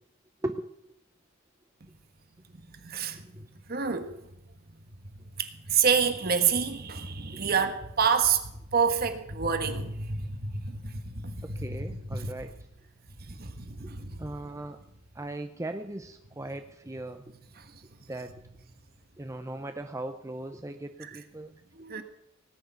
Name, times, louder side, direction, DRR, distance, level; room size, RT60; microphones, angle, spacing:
voice 1, 2.8-4.1 5.4-12.3 13.3-14.3 17.6-17.7 21.0-21.1 21.7-22.0, right 6 dB, 45° right, 1.5 m, -28 dB
voice 2, 11.4-12.5 13.8-13.9 14.2-14.8 15.1-17.3 18.1-18.3 19.2-21.6, right 1 dB, 15° right, 0.6 m, -38 dB
18.5 x 6.7 x 9.3 m
head